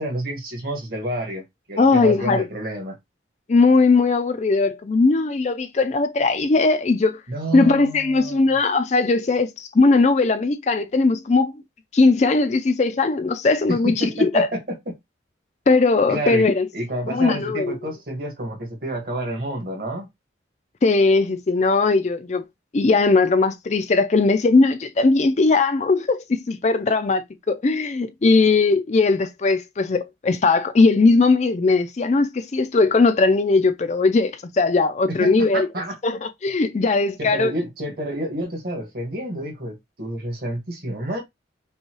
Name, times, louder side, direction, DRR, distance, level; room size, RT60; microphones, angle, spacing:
voice 1, 0.0-3.0 7.3-8.5 13.7-15.0 16.1-16.5 16.7-20.1 35.1-36.0 37.2-41.2, right 1 dB, 50° right, 1.7 m, -29 dB
voice 2, 1.8-2.4 3.5-7.2 7.5-11.5 11.9-14.5 15.7-16.7 17.1-17.7 20.8-22.4 22.7-35.7 36.0-37.5, left 3 dB, 40° left, 0.4 m, -19 dB
5.4 x 2.3 x 3.0 m
head